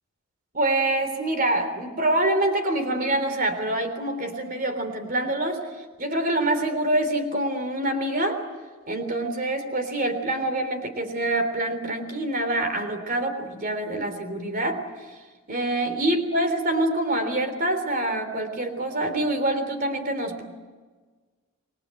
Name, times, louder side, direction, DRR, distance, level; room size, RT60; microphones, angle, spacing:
voice 1, 0.5-8.4 8.9-14.8 15.5-20.4, right 1 dB, 40° right, 7 dB, 3.5 m, -26 dB
28.5 x 21.5 x 7.8 m, 1.4 s
head